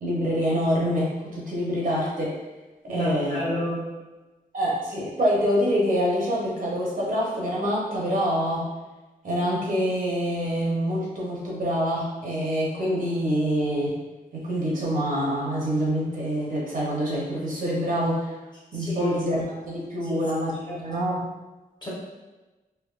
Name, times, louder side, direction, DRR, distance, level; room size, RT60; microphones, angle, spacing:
voice 1, 0.0-2.3 2.9-3.4 4.5-8.7 9.2-13.9 14.3-18.3 18.7-21.3, equal, 60° right, -5 dB, 0.9 m, -26 dB
voice 2, 2.9-3.8 19.0-19.1 20.7-20.8 21.8-21.9, equal, 30° left, -7 dB, 1.0 m, -29 dB
3.4 x 2.8 x 2.5 m, 1.1 s
wide cardioid pair, 160°, 16 cm